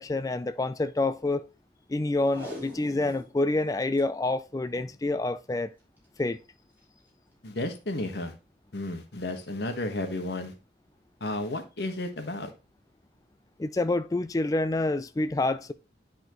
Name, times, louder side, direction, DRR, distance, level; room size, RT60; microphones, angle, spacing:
voice 1, 0.0-1.4 1.9-5.7 6.2-6.4 13.6-15.7, left 2 dB, 20° left, 0.3 m, -27 dB
Packing tape duct tape, 2.2-3.3 3.7-4.0 4.6-5.0 6.0-6.2 6.8-6.9, left 1 dB, 10° right, 3.4 m, -42 dB
voice 2, 7.4-8.3 8.7-10.5 11.2-12.5, left 2 dB, 70° left, 1.3 m, -32 dB
10.5 x 4.3 x 3.1 m
head